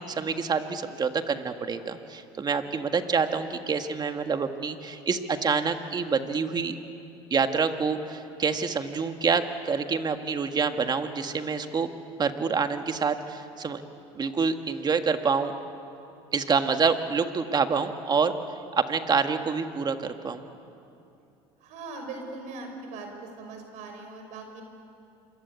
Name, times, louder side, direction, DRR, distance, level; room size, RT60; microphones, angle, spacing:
voice 1, 0.0-6.8 7.3-11.9 12.2-13.8 14.2-15.5 16.3-18.3 18.7-20.4, right 5 dB, 30° right, 7 dB, 1.8 m, -27 dB
voice 2, 21.6-24.6, right 3 dB, 70° right, 4 dB, 5.4 m, -40 dB
27.0 x 22.5 x 8.4 m, 2.7 s
supercardioid pair, 90°, 13 cm